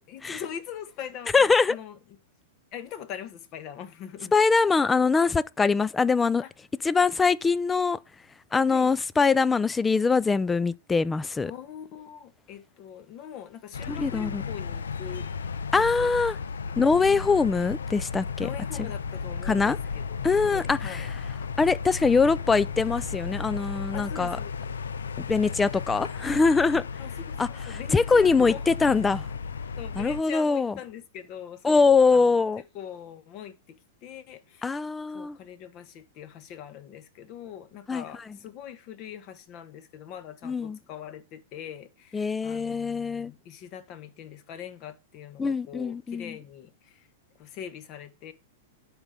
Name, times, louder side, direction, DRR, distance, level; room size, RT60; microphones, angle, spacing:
voice 1, 0.1-1.9 2.7-4.3 8.7-8.9 11.4-15.5 15.7-16.1 17.1-17.3 18.4-21.1 23.9-24.5 26.7-28.6 29.8-32.4 32.7-34.8 35.1-47.1 47.4-48.3, left 9 dB, 40° left, 1.4 m, -42 dB
voice 2, 1.3-1.8 4.3-6.4 6.8-8.0 8.5-11.5 13.9-14.4 15.7-16.4 16.8-18.5 18.8-18.9 19.4-19.8 20.2-21.1 21.6-24.4 25.2-26.8 27.4-29.3 30.0-30.7 31.6-32.6 34.6-35.4 37.9-38.4 40.4-40.8 42.1-43.3 45.4-46.4, left 4 dB, 10° left, 0.5 m, -23 dB
sound 1, 13.7-30.2, left 5 dB, 70° left, 0.6 m, -34 dB
11.0 x 5.4 x 6.3 m
figure-of-eight pair, 100°, 0 cm